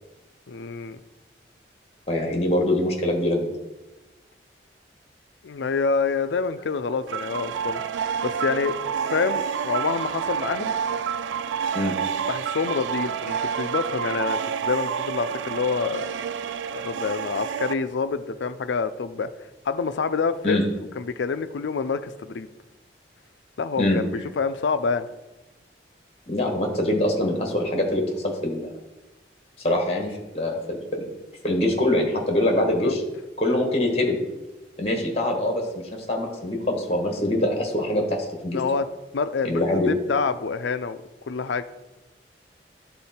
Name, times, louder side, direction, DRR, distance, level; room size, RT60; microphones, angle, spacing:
voice 1, 0.5-1.0 5.4-7.8 8.2-8.8 9.1-10.7 12.3-16.1 16.7-20.6 21.0-22.5 23.6-25.1 32.8-32.9 38.5-38.8 39.1-41.0 41.3-41.6, left 5 dB, 80° left, 11 dB, 0.5 m, -27 dB
voice 2, 2.1-3.5 11.7-11.9 20.4-20.6 23.8-24.0 26.3-28.7 29.6-31.0 31.4-33.0 33.4-34.2 34.8-35.6 35.9-38.6 39.4-39.9, left 1 dB, 35° left, 1 dB, 1.4 m, -24 dB
sound 1, 7.1-17.7, right 7 dB, 85° right, 0.3 m, -29 dB
11.0 x 3.8 x 4.3 m, 1.1 s
head